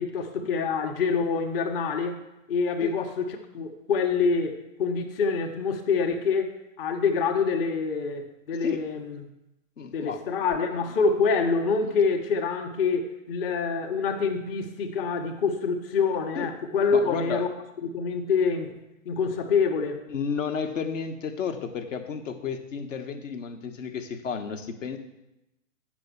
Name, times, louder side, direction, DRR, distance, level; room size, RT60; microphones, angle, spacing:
voice 1, 0.0-2.2 2.5-3.3 3.5-6.5 6.8-9.2 9.9-17.5 17.8-20.0, left 5 dB, 45° left, 5 dB, 1.1 m, -26 dB
voice 2, 9.8-10.3 16.3-16.5 16.9-17.4 20.1-25.0, left 6 dB, 70° left, 7 dB, 1.3 m, -32 dB
8.8 x 6.1 x 6.7 m, 0.93 s
hypercardioid pair, 135°, 40 cm